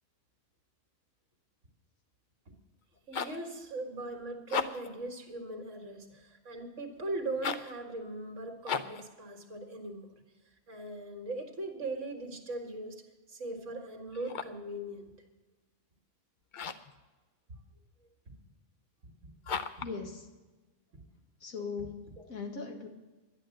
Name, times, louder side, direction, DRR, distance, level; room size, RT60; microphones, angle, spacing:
sound 1, 2.8-3.5 4.4-5.0 7.3-7.8 8.6-9.1 14.1-14.7 16.5-17.0 19.4-20.0, left 6 dB, 50° left, 0.6 m, -36 dB
voice 1, 3.1-15.1 18.3-18.4 19.0-19.4 20.9-21.0, right 2 dB, 60° right, 4 dB, 2.0 m, -40 dB
voice 2, 19.8-20.3 21.4-22.9, left 5 dB, 80° left, 3 dB, 2.2 m, -39 dB
11.5 x 10.5 x 7.6 m, 1.2 s
omnidirectional pair, 1.4 m